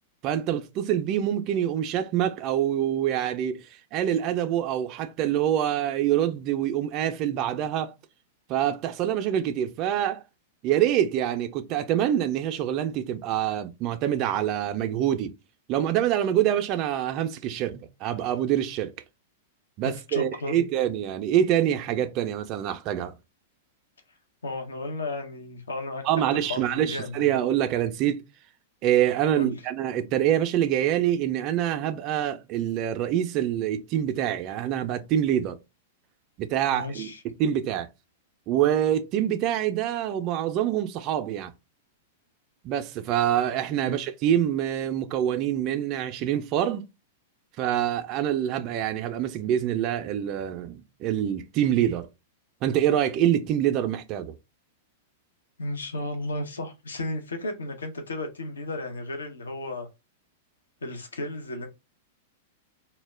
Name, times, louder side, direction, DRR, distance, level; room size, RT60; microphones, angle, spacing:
voice 1, 0.2-7.9 8.5-10.2 10.6-15.3 15.7-18.9 19.8-23.1 26.0-28.2 28.8-35.6 36.4-37.9 38.5-41.5 42.6-46.8 47.6-52.1 52.6-54.4, right 11 dB, 40° right, 0.4 m, -25 dB
voice 2, 19.8-20.6 24.4-26.1 26.3-27.4 29.3-29.5 36.7-37.2 43.7-43.9 55.6-59.9 60.8-61.7, left 2 dB, 80° left, 0.6 m, -34 dB
2.1 x 2.0 x 3.2 m
hypercardioid pair, 105°, 0 cm